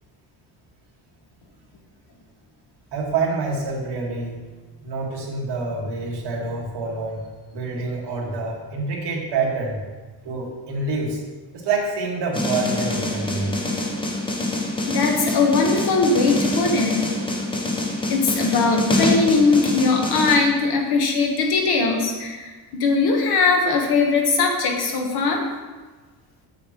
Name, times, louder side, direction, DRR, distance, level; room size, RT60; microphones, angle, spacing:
voice 1, 2.9-4.4 4.8-7.2 7.5-9.8 10.2-11.2 11.5-13.6, right 3 dB, 65° right, -2 dB, 1.7 m, -27 dB
sound 1, 12.3-20.4, left 2 dB, 10° left, 0.6 m, -25 dB
voice 2, 14.9-17.0 18.1-25.5, left 4 dB, 60° left, 2 dB, 1.2 m, -20 dB
7.2 x 6.6 x 3.0 m, 1.3 s
cardioid pair, 165°, 44 cm